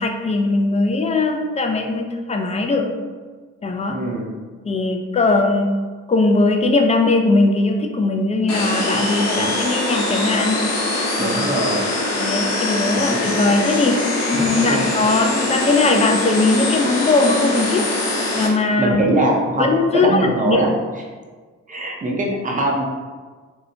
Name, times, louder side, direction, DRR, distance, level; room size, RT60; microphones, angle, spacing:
voice 1, 0.0-2.9 3.6-4.0 4.6-5.7 6.1-10.7 11.2-11.4 12.2-17.9 18.3-19.0 19.6-20.6, left 3 dB, 25° left, 3 dB, 0.4 m, -19 dB
voice 2, 3.9-4.3 11.2-11.8 12.9-13.2 14.3-14.8 18.6-20.7 21.7-22.9, right 1 dB, 25° right, -1 dB, 0.6 m, -22 dB
sound 1, 8.5-18.5, left 2 dB, 60° left, 0.9 m, -23 dB
3.1 x 2.7 x 2.7 m, 1.5 s
cardioid pair, 90°, 30 cm